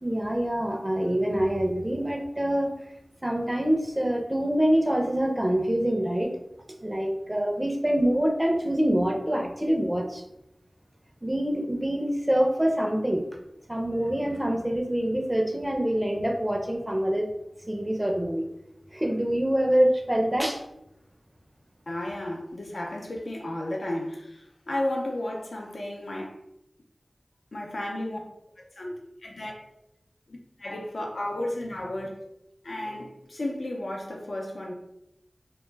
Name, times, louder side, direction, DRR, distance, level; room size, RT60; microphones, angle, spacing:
voice 1, 0.0-2.7 3.2-6.3 6.8-10.2 11.2-13.2 13.7-17.3 17.7-18.5 18.9-20.6, equal, 20° right, 2 dB, 0.4 m, -25 dB
voice 2, 21.9-26.4 27.5-28.2 28.6-29.5 30.3-32.1 32.6-34.7, left 1 dB, 80° left, 0 dB, 0.5 m, -33 dB
2.2 x 2.0 x 3.2 m, 0.84 s
wide cardioid pair, 50°, 0 cm